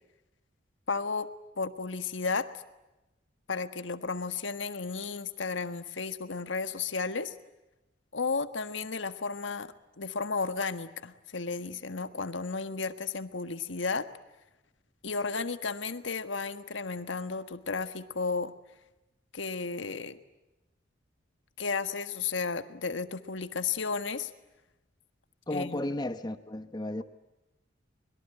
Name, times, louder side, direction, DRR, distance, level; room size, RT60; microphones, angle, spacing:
voice 1, 0.9-1.3 1.6-2.5 3.5-7.3 8.1-14.1 15.0-18.5 19.3-20.2 21.6-24.3 25.5-25.8, left 4 dB, 75° left, 1.5 m, -33 dB
voice 2, 25.5-27.0, left 1 dB, 20° left, 1.0 m, -34 dB
24.5 x 22.5 x 9.1 m
head